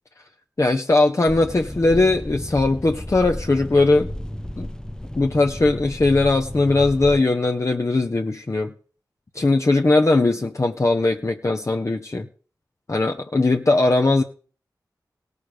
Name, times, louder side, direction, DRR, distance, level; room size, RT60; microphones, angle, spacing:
voice 1, 0.6-4.1 4.6-4.7 5.2-8.7 9.3-12.3 12.9-14.2, left 2 dB, 45° left, 3 dB, 1.0 m, -19 dB
sound 1, 1.3-7.2, left 1 dB, 10° left, 0.6 m, -33 dB
16.5 x 6.8 x 6.6 m, 0.42 s
cardioid pair, 40°, 7 cm